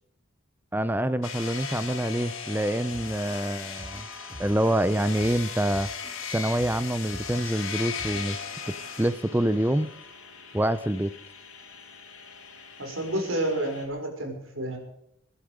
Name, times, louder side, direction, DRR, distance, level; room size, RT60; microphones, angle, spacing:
voice 1, 0.7-4.1 4.4-5.9 6.2-8.5 9.0-9.9 10.5-11.1, right 1 dB, 10° right, 13 dB, 0.5 m, -26 dB
sound 1, 1.2-13.9, left 6 dB, 70° left, 3.9 m, -38 dB
sound 2, 2.9-8.4, equal, 10° left, 4.0 m, -46 dB
voice 2, 12.8-14.8, right 1 dB, 70° right, 3 dB, 5.3 m, -30 dB
22.5 x 11.5 x 5.0 m, 0.74 s
head